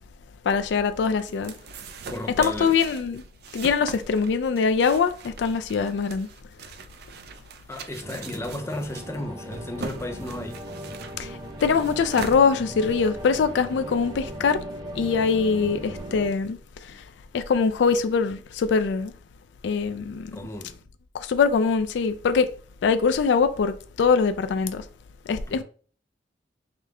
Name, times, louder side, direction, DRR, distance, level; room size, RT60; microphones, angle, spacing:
voice 1, 0.4-1.5 2.4-3.2 3.5-6.3 11.2-14.6 14.9-17.0 17.3-19.1 19.6-20.4 21.1-22.5 22.8-24.8 25.3-25.6, left 5 dB, 75° left, 0.3 m, -23 dB
sound 1, 0.6-13.1, right 5 dB, 60° right, 0.4 m, -42 dB
voice 2, 2.1-2.8 7.7-10.7 20.3-20.8 25.5-25.6, left 1 dB, 15° left, 0.6 m, -34 dB
sound 2, 8.0-16.3, right 1 dB, 25° right, 0.7 m, -38 dB
5.0 x 2.1 x 3.4 m
head